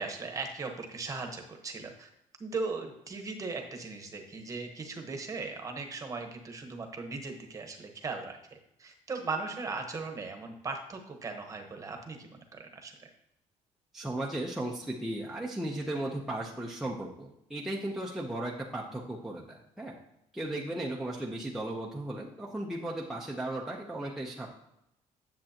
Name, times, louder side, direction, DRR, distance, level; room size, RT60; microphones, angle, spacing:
voice 1, 0.0-2.1 2.4-13.1, right 4 dB, 25° right, 4 dB, 1.1 m, -38 dB
voice 2, 13.9-20.0 20.3-24.5, right 1 dB, 5° right, -3 dB, 0.7 m, -36 dB
10.0 x 7.4 x 2.9 m, 0.81 s
cardioid pair, 155°, 13 cm